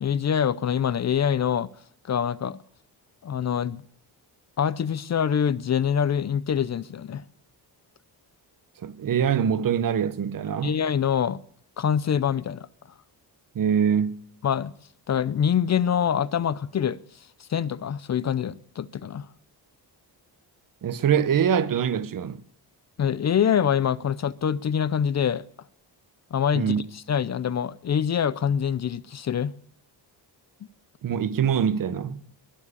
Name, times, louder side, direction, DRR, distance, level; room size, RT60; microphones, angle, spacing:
voice 1, 0.0-1.7 2.1-2.6 3.2-3.8 4.6-7.2 10.6-11.4 11.8-12.7 14.4-14.7 15.1-17.0 17.4-19.3 23.0-25.4 26.3-29.5, left 8 dB, 40° left, 0.5 m, -25 dB
voice 2, 8.8-10.8 13.5-14.1 20.8-22.4 26.5-26.8 31.0-32.2, right 8 dB, 50° right, 1.0 m, -24 dB
21.5 x 7.4 x 8.3 m
wide cardioid pair, 165°, 41 cm